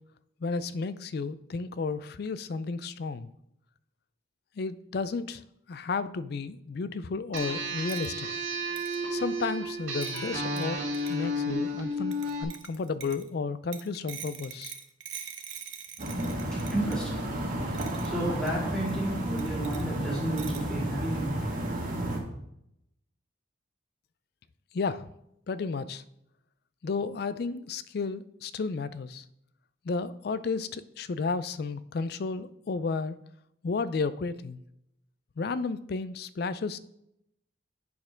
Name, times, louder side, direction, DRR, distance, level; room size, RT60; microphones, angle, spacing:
voice 1, 0.4-3.3 4.6-5.4 5.7-8.3 9.1-10.8 11.1-12.1 12.4-14.7 24.7-25.1 25.5-26.0 26.8-29.2 29.8-33.2 33.6-34.6 35.4-36.8, left 4 dB, 50° left, 15 dB, 0.4 m, -32 dB
sound 1, 7.3-12.4, equal, 80° right, 1.8 m, -32 dB
sound 2, 7.4-7.5 7.9-8.1 8.8-9.0 10.0-10.3 10.6-10.7 10.9-11.2 12.1-13.3 13.7-17.0 17.7-18.1 18.5-18.6 18.9-19.0 19.4-19.8 20.4-20.7, right 9 dB, 60° right, 0.7 m, -43 dB
sound 3, 16.0-22.2, right 1 dB, 45° right, 1.4 m, -32 dB
voice 2, 16.5-17.2 18.0-21.3, right 1 dB, 5° left, -5 dB, 2.2 m, -32 dB
8.3 x 4.3 x 5.0 m, 0.79 s
head